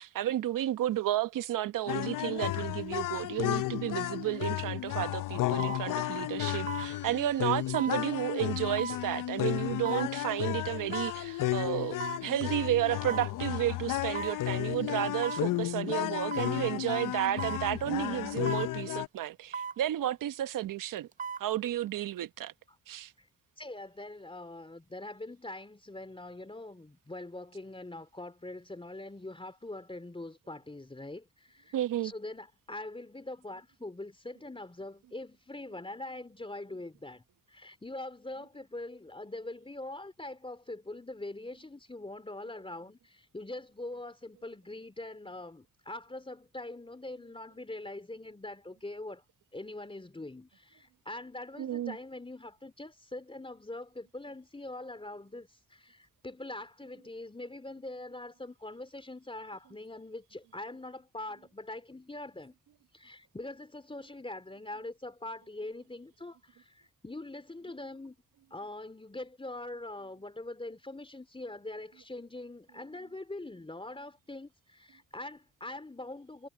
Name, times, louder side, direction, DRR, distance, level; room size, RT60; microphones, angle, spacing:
voice 1, 0.0-21.1 21.4-22.5 22.9-23.1 31.7-32.1 51.6-52.0, right 13 dB, 75° right, 1.2 m, -32 dB
sound 1, 1.9-19.1, left 15 dB, 75° left, 0.8 m, -33 dB
sound 2, 4.4-4.6 5.6-5.8 6.7-6.9 7.7-8.0 8.8-9.0 9.9-10.1 10.9-11.2 12.0-12.3 13.1-13.3 14.1-14.4 15.2-15.5 16.3-16.6 17.4-17.6 18.5-18.7 19.5-19.8 21.0-21.5 21.9-22.0, right 6 dB, 25° right, 0.5 m, -37 dB
sound 3, 6.8-10.9, left 4 dB, 35° left, 7.9 m, -61 dB
voice 2, 23.6-37.2 37.5-49.2 49.5-62.5 62.9-68.2 68.5-76.5, left 2 dB, 15° left, 3.4 m, -43 dB
supercardioid pair, 65°, 32 cm